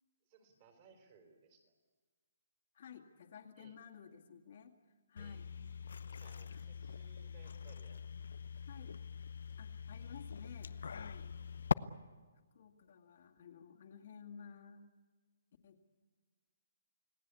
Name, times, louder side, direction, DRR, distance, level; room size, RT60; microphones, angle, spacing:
voice 1, 0.2-1.7 3.6-3.8 5.2-5.4 6.1-8.1, right 5 dB, 25° right, 4 dB, 4.1 m, -64 dB
voice 2, 2.7-4.8 5.1-5.5 6.5-6.7 8.7-9.0 9.6-11.3 12.5-14.8 15.6-15.9, left 7 dB, 40° left, 2 dB, 2.2 m, -54 dB
sound 1, 5.2-11.7, left 6 dB, 70° left, 0.7 m, -42 dB
29.5 x 18.5 x 8.4 m, 1.4 s
hypercardioid pair, 175°, 0 cm